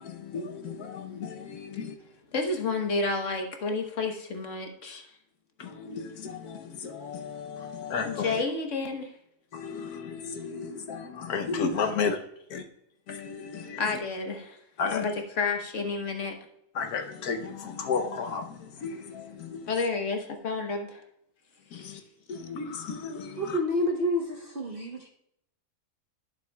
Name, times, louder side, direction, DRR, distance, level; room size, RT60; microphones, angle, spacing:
voice 1, 0.0-1.9 5.6-8.4 9.5-12.2 12.5-12.6 13.1-13.8 14.8-15.0 16.8-18.4 18.8-19.7 21.7-22.0 22.3-23.4, left 5 dB, 70° left, 1.2 m, -33 dB
voice 2, 2.3-5.1 8.0-9.1 13.8-14.6 14.9-16.4 19.7-21.0, left 3 dB, 50° left, 1.3 m, -30 dB
voice 3, 23.4-25.1, left 1 dB, 45° right, 0.8 m, -28 dB
12.0 x 7.1 x 2.2 m
omnidirectional pair, 1.8 m